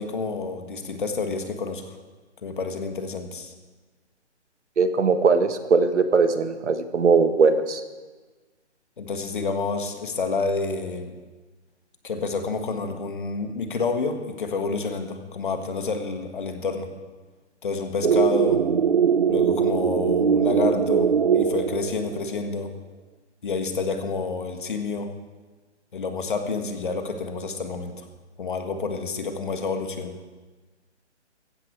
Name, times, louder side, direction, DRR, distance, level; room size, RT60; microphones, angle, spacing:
voice 1, 0.0-2.0 2.4-3.5 9.0-11.1 12.0-16.9 17.6-18.6 19.3-22.7 23.4-25.1 25.9-28.1 28.4-30.2, left 4 dB, 45° left, 6 dB, 1.7 m, -29 dB
voice 2, 4.8-7.8, right 4 dB, 75° right, 10 dB, 1.5 m, -20 dB
sound 1, 18.0-22.3, right 7 dB, 50° right, 0.7 m, -21 dB
15.0 x 15.0 x 4.7 m, 1.3 s
hypercardioid pair, 175°, 35 cm